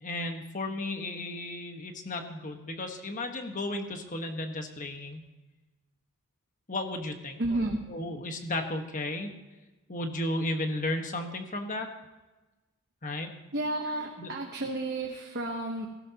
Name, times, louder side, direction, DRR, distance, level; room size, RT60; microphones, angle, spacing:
voice 1, 0.0-5.2 6.7-7.4 7.9-9.3 9.9-11.9 13.0-13.3 14.2-14.3, left 1 dB, 35° left, 4 dB, 1.4 m, -34 dB
voice 2, 7.4-7.9 13.5-15.9, right 2 dB, 50° right, 2 dB, 1.1 m, -31 dB
17.0 x 16.0 x 2.9 m, 1.1 s
head